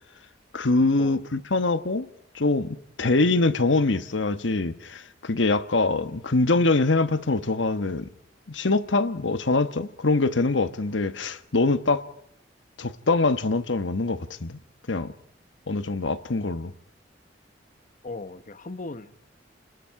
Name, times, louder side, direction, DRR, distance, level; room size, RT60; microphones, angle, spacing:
voice 1, 0.5-2.1 2.3-8.1 8.5-12.0 12.8-14.6 14.9-15.1 15.7-16.7, left 3 dB, 75° left, 1.2 m, -24 dB
voice 2, 18.0-19.3, left 2 dB, 45° left, 1.1 m, -38 dB
29.5 x 21.5 x 4.8 m
head